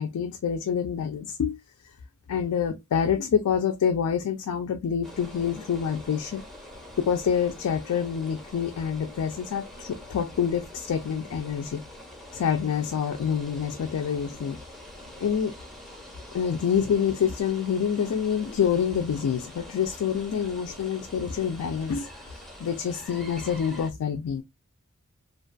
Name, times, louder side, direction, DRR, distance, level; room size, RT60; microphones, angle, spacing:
voice 1, 0.0-1.6 2.3-6.4 7.0-11.8 12.3-14.6 15.2-15.5 16.3-24.4, left 7 dB, 85° left, 0.3 m, -27 dB
sound 1, 5.0-23.9, left 1 dB, ahead, 0.5 m, -45 dB
2.5 x 2.2 x 2.4 m
head